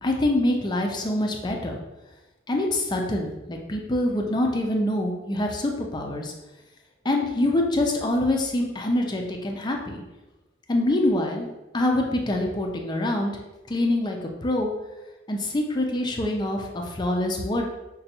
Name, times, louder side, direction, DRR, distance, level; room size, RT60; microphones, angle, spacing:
voice 1, 0.0-1.8 2.5-6.3 7.0-10.0 10.7-11.5 11.7-13.3 13.7-14.7 15.3-17.7, left 1 dB, 25° left, 1 dB, 0.4 m, -25 dB
5.1 x 2.2 x 2.8 m, 1.1 s
head